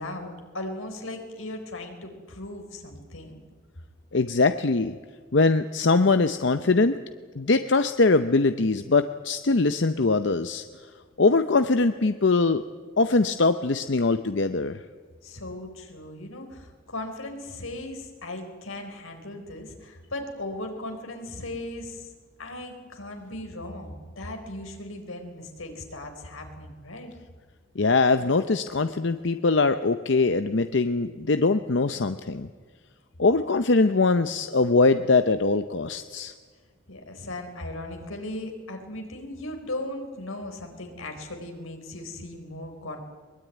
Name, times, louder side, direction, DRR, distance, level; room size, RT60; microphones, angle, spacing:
voice 1, 0.0-3.4 15.2-22.1 22.4-27.1 36.9-43.0, left 1 dB, 85° left, 4 dB, 4.1 m, -37 dB
voice 2, 4.1-5.0 5.3-7.0 7.4-10.6 11.2-12.6 13.0-14.8 27.8-32.5 33.2-36.3, left 3 dB, 60° left, 10 dB, 0.7 m, -22 dB
22.0 x 21.0 x 9.3 m, 1.5 s
head